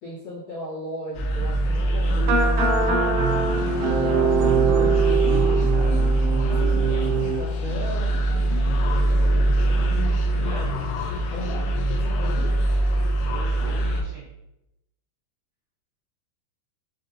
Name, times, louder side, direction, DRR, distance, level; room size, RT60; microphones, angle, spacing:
voice 1, 0.0-2.7 3.5-6.1 6.4-8.2 11.3-11.6 11.9-12.5, left 1 dB, 70° left, -12 dB, 1.9 m, -36 dB
sound 1, 1.2-14.0, right 1 dB, 90° left, 3.3 m, -23 dB
sound 2, 2.1-7.4, right 5 dB, 90° right, 2.5 m, -23 dB
voice 2, 10.3-10.8 13.2-14.2, right 1 dB, 70° right, -10 dB, 2.3 m, -40 dB
7.3 x 2.7 x 2.6 m, 0.90 s
omnidirectional pair, 5.9 m